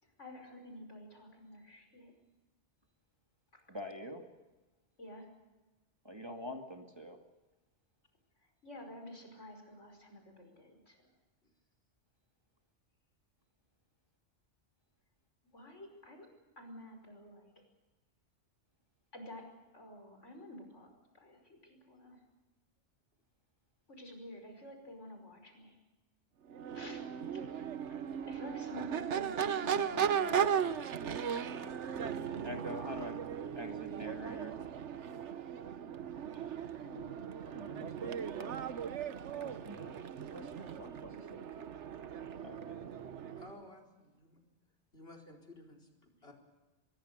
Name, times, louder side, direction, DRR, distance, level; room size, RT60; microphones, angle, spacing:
voice 1, 0.0-2.1 5.0-5.3 8.6-11.0 15.5-16.3 16.6-17.5 19.1-19.4 19.7-20.9 21.1-22.2 23.9-25.8 26.7-27.0 27.3-32.4 32.9-33.1 36.3-37.1, left 1 dB, 80° left, 4 dB, 5.7 m, -51 dB
voice 2, 3.7-4.2 6.0-7.2 32.4-33.2 33.6-34.5 37.5-38.6 39.3-40.0 40.3-41.5 42.4-42.8, left 1 dB, 20° right, 3 dB, 2.4 m, -46 dB
Crowd / Race car auto racing / Accelerating revving vroom, 26.5-43.6, right 8 dB, 75° right, 1.2 m, -37 dB
voice 3, 43.4-44.4 44.9-46.3, left 2 dB, 55° left, 5 dB, 4.7 m, -54 dB
25.0 x 22.0 x 6.8 m, 1.1 s
omnidirectional pair, 1.2 m